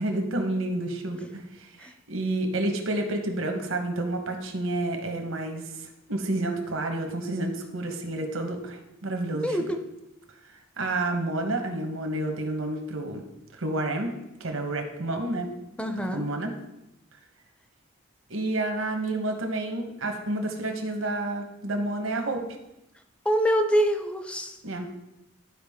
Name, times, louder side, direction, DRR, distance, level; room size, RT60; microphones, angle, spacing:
voice 1, 0.0-9.6 10.5-13.2 13.5-14.1 14.4-15.5 16.1-16.5 18.3-22.4 24.6-24.9, right 2 dB, 75° right, 4 dB, 1.1 m, -30 dB
voice 2, 9.4-9.8 15.8-16.2 23.2-24.6, equal, 5° left, 6 dB, 0.5 m, -25 dB
11.5 x 4.8 x 3.6 m, 0.91 s
head